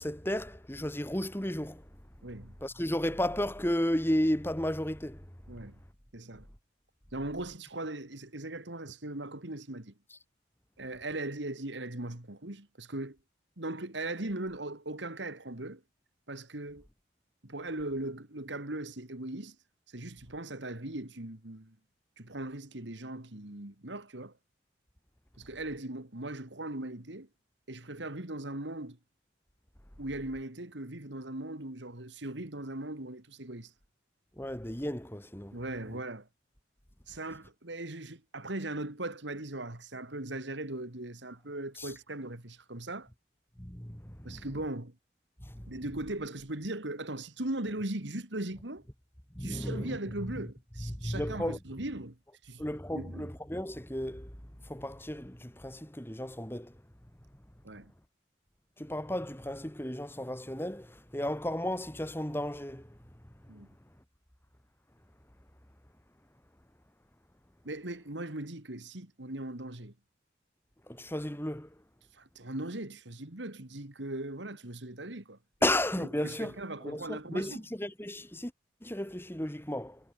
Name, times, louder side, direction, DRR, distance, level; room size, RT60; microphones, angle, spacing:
voice 1, 0.0-1.8 2.6-5.2 34.4-35.6 41.8-41.9 43.6-44.5 45.5-45.7 49.3-50.3 50.8-51.6 52.6-54.3 54.7-56.7 58.8-62.9 70.9-71.7 75.6-76.6 76.8-78.5 78.8-80.0, left 1 dB, 10° left, 2.4 m, -33 dB
voice 2, 2.2-2.5 5.5-5.8 6.1-6.5 7.1-9.9 10.8-13.2 13.6-15.8 16.3-16.9 17.4-19.6 19.9-21.7 22.2-24.3 25.4-27.3 27.7-29.0 30.0-33.7 35.5-36.3 37.1-43.1 44.2-44.9 45.7-48.8 49.4-52.2 52.4-52.6 52.9-53.3 57.6-57.9 63.5-63.7 67.6-69.9 72.2-75.4 76.0-77.6, right 2 dB, 75° right, 2.7 m, -39 dB
head